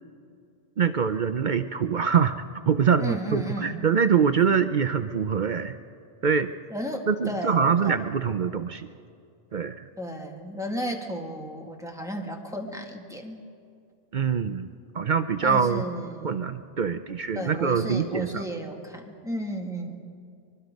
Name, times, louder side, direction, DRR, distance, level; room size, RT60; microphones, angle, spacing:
voice 1, 0.8-5.8 6.2-6.5 7.1-8.9 9.5-9.9 14.1-14.7 14.9-15.8 16.2-18.4, right 6 dB, 50° right, 10 dB, 0.7 m, -24 dB
voice 2, 3.0-3.8 6.7-8.0 10.0-13.4 15.4-16.5 17.4-19.9, equal, 5° right, 1 dB, 1.8 m, -34 dB
24.0 x 22.5 x 5.2 m, 2.3 s
omnidirectional pair, 1.1 m